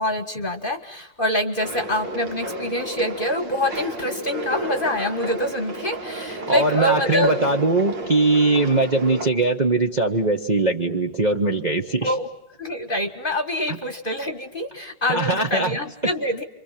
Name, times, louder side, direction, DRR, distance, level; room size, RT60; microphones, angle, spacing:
voice 1, 0.0-7.4 8.6-8.7 12.0-12.3 12.6-16.4, left 1 dB, 30° left, 8 dB, 1.4 m, -25 dB
sound 1, 1.6-9.3, right 1 dB, 65° right, 2.8 m, -32 dB
voice 2, 6.5-12.1 15.1-15.8, right 2 dB, 25° right, 2 dB, 1.0 m, -21 dB
30.0 x 24.5 x 7.4 m, 0.81 s
omnidirectional pair, 2.2 m